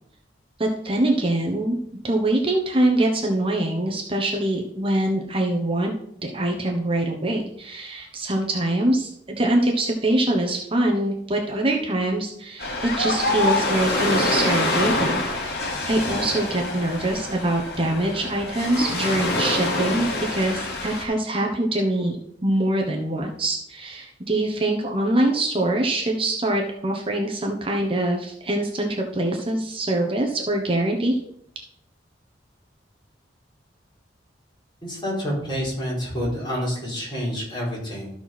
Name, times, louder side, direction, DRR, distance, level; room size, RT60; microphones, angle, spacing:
voice 1, 0.6-1.8 2.0-5.9 6.2-9.1 9.4-15.2 15.9-22.2 22.4-31.1, right 1 dB, 30° right, 1 dB, 1.1 m, -24 dB
Ocean, 12.6-21.0, left 2 dB, 60° left, 2.3 m, -26 dB
voice 2, 34.8-38.1, equal, 25° left, -5 dB, 4.4 m, -28 dB
13.0 x 4.6 x 5.9 m, 0.72 s
head